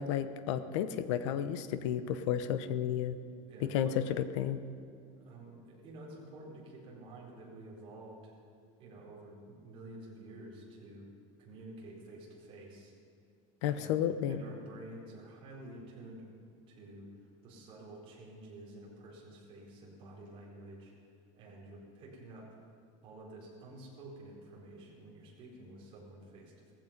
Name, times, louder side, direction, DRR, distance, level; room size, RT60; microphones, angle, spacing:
voice 1, 0.0-3.2 3.7-4.6 13.6-14.4, left 9 dB, 85° left, 12 dB, 1.0 m, -32 dB
voice 2, 3.5-4.0 5.2-8.3 8.8-11.1 11.4-12.9 13.7-16.3 16.7-17.1 17.4-20.9 21.3-22.5 23.0-26.7, right 2 dB, 35° right, -4 dB, 4.4 m, -50 dB
18.0 x 15.0 x 5.3 m, 2.4 s
cardioid pair, 175°, 15 cm